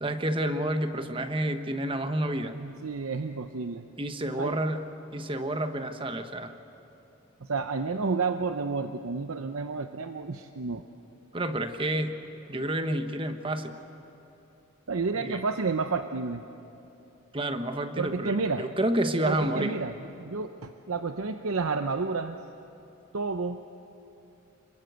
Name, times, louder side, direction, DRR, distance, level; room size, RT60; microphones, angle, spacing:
voice 1, 0.0-2.5 4.0-4.8 5.1-6.5 11.3-12.1 12.5-13.7 15.2-15.4 17.3-19.7, right 1 dB, 25° right, 8 dB, 1.1 m, -29 dB
voice 2, 2.6-3.9 4.4-4.6 7.4-10.8 14.9-16.4 18.0-18.6 19.2-22.4 23.1-23.6, right 4 dB, 85° right, 8 dB, 0.7 m, -30 dB
27.0 x 22.0 x 8.1 m, 3.0 s
head